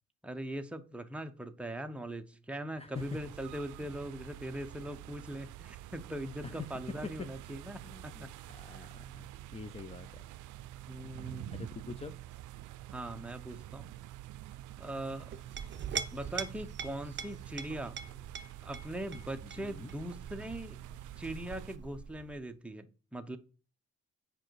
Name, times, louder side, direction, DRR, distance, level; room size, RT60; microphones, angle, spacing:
voice 1, 0.2-8.3 8.7-8.9 10.9-11.5 12.9-13.9 14.8-15.3 16.1-17.9 18.6-20.8 21.2-23.4, right 1 dB, 5° right, 0.9 m, -41 dB
sound 1, 2.9-21.8, right 14 dB, 80° right, 0.5 m, -48 dB
voice 2, 7.8-10.3 11.5-12.2 19.4-19.9, left 4 dB, 20° left, 0.6 m, -46 dB
Chink clink, 15.3-22.4, right 6 dB, 40° right, 0.7 m, -43 dB
7.5 x 5.2 x 4.7 m
cardioid pair, 90°, 30 cm